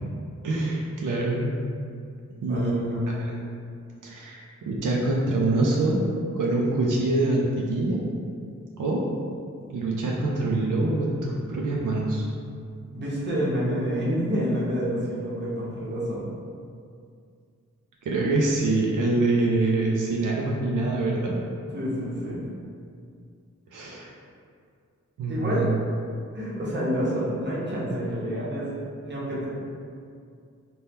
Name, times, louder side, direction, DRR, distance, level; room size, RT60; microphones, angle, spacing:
voice 1, 0.4-1.6 2.4-3.3 4.0-6.0 6.3-8.0 8.8-9.0 9.7-12.3 18.1-21.4 23.7-24.1 25.2-25.8, right 2 dB, 85° right, -3 dB, 0.5 m, -25 dB
voice 2, 2.5-3.0 12.9-16.3 21.7-22.4 25.3-25.7 26.3-28.7 29.0-29.5, equal, 35° right, -6 dB, 0.8 m, -28 dB
2.8 x 2.2 x 3.4 m, 2.3 s
wide cardioid pair, 70°, 30 cm